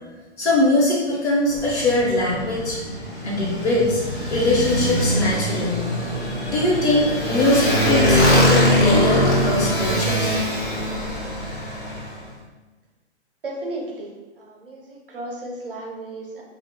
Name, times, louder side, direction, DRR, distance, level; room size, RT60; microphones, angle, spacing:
voice 1, 0.4-2.8 3.2-4.0 4.3-5.8 6.1-10.4, left 2 dB, 70° left, -4 dB, 1.1 m, -21 dB
Motorcycle, 1.5-12.2, equal, 45° left, 0.6 m, -22 dB
voice 2, 13.4-14.1 14.4-16.4, right 1 dB, 50° right, -1 dB, 0.6 m, -34 dB
2.3 x 2.1 x 3.6 m, 1.2 s
hypercardioid pair, 175°, 35 cm